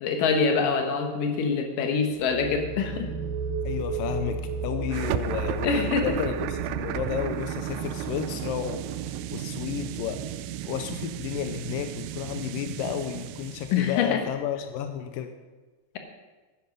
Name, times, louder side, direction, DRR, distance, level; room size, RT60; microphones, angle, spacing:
voice 1, 0.0-3.1 5.6-6.1 13.7-14.2, left 5 dB, 65° left, 5 dB, 2.6 m, -25 dB
sound 1, 2.1-13.7, right 4 dB, 75° right, 2.1 m, -36 dB
voice 2, 3.6-9.0 9.3-10.2 10.7-15.3, left 10 dB, 85° left, 8 dB, 2.0 m, -32 dB
sound 2, 4.9-14.0, right 14 dB, 90° right, 2.7 m, -34 dB
12.0 x 10.0 x 5.4 m, 1.3 s
omnidirectional pair, 4.8 m